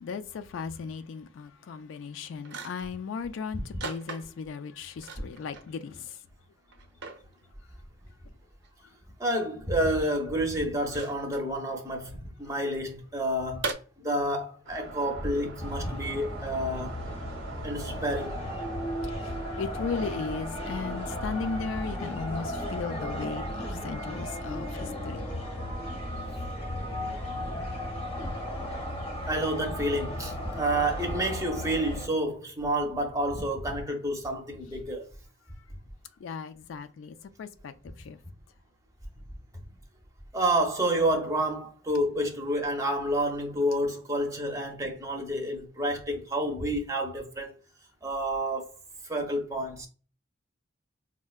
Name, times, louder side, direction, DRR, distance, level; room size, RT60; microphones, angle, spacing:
voice 1, 0.0-6.1 19.6-25.3 36.2-38.2, left 5 dB, 70° left, 0.3 m, -36 dB
sound 1, 2.0-2.1 2.4-3.0 3.8-4.6 5.0-5.7 6.1-6.2 6.7-7.2 8.6-8.7 10.8-11.4 13.6-13.7, right 4 dB, 60° right, 0.5 m, -37 dB
voice 2, 9.2-13.7 14.0-17.0 17.6-18.4 25.7-25.8 26.7-26.8 29.3-35.1 40.3-47.5 48.0-48.8 49.0-49.9, right 1 dB, 15° right, 0.6 m, -29 dB
sound 2, 14.6-22.0, right 2 dB, 85° right, 0.8 m, -45 dB
sound 3, 15.6-32.1, equal, 30° left, 0.7 m, -35 dB
4.4 x 2.1 x 2.3 m
head